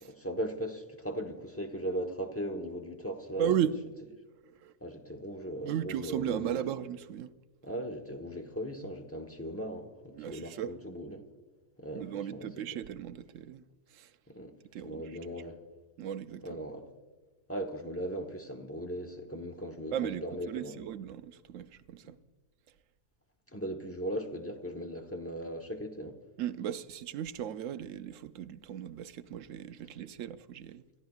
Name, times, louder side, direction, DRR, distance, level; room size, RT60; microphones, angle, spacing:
voice 1, 0.0-3.5 4.8-6.6 7.6-11.3 11.8-12.8 14.3-14.6 14.8-15.6 16.4-16.9 17.5-20.8 22.0-22.1 23.5-26.2, right 1 dB, 10° left, 0.9 m, -38 dB
voice 2, 3.4-3.8 4.4-4.7 5.6-7.3 10.1-10.7 11.9-13.6 13.9-14.1 14.7-15.2 16.0-16.6 19.9-22.2 26.4-30.8, right 9 dB, 70° right, 0.9 m, -36 dB
29.0 x 13.5 x 2.4 m
omnidirectional pair, 1.4 m